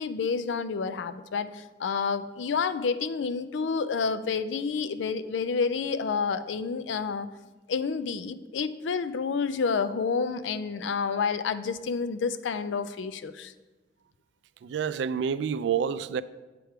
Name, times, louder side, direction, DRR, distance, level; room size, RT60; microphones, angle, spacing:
voice 1, 0.0-7.3 7.7-13.5, left 5 dB, 80° left, 0.4 m, -29 dB
voice 2, 14.6-16.2, right 7 dB, 70° right, 0.3 m, -28 dB
7.7 x 5.0 x 4.5 m
head